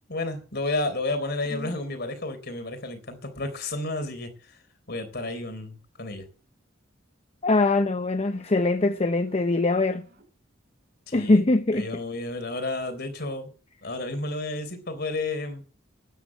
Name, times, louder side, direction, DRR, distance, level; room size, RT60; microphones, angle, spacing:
voice 1, 0.1-4.6 4.9-6.2 11.1-11.4 11.8-13.5 13.8-15.6, left 2 dB, 55° left, 3.8 m, -31 dB
voice 2, 7.4-10.1 11.1-11.9, left 2 dB, 35° left, 0.6 m, -22 dB
sound 1, 8.0-10.2, equal, 55° right, 6.5 m, -58 dB
12.5 x 9.9 x 7.8 m
head